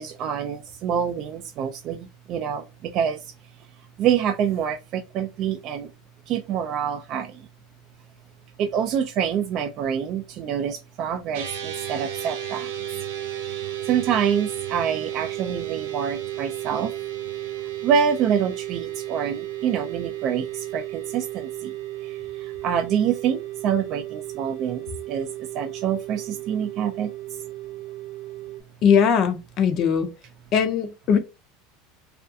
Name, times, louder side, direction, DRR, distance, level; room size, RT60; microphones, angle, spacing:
voice 1, 0.0-3.3 4.0-5.9 6.3-7.5 8.6-12.7 13.3-16.9 17.4-17.5 17.8-21.7 22.0-27.1, right 8 dB, 45° right, 0.3 m, -26 dB
sound 1, 11.3-28.6, right 13 dB, 85° right, 0.7 m, -33 dB
voice 2, 28.8-30.1 30.5-31.2, left 7 dB, 40° left, 0.4 m, -20 dB
2.4 x 2.2 x 2.6 m
supercardioid pair, 145°, 0 cm